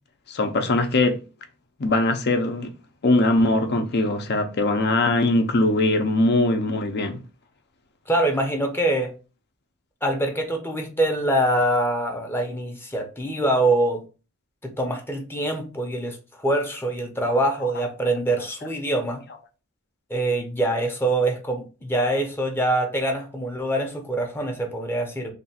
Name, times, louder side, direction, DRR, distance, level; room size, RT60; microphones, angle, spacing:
voice 1, 0.3-1.2 1.8-2.7 3.0-7.2, left 2 dB, 50° left, 0.6 m, -21 dB
voice 2, 8.1-9.1 10.0-14.0 14.6-19.2 20.1-25.3, right 1 dB, 10° left, 0.7 m, -24 dB
3.4 x 2.4 x 4.1 m
head